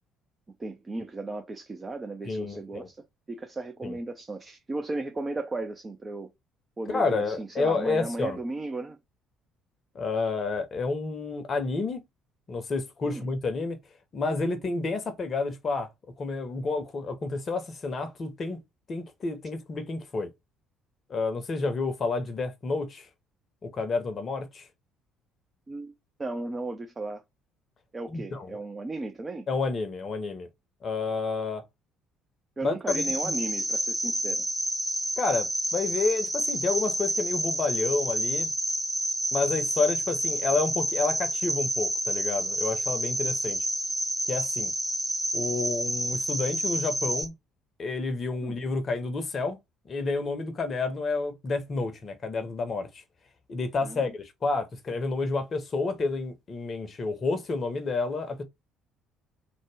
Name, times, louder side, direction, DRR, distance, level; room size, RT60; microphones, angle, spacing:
voice 1, 0.6-6.3 6.8-9.0 13.0-13.3 25.7-25.9 26.2-27.2 27.9-29.5 32.6-34.5 48.4-48.6 53.8-54.2, right 2 dB, 25° right, 0.4 m, -35 dB
voice 2, 2.3-2.9 3.8-4.0 6.9-8.4 9.9-12.0 12.5-13.8 14.1-15.9 16.2-18.6 18.9-20.3 21.1-23.1 23.6-24.7 28.1-28.6 29.5-30.5 30.8-31.6 32.6-33.3 35.2-38.5 39.3-43.6 44.3-44.7 45.3-47.3 47.8-49.6 49.9-53.0 53.5-58.4, left 3 dB, 40° left, 0.7 m, -30 dB
Cricket, 32.9-47.2, right 1 dB, 5° right, 0.9 m, -29 dB
2.6 x 2.1 x 3.3 m
figure-of-eight pair, 50°, 0 cm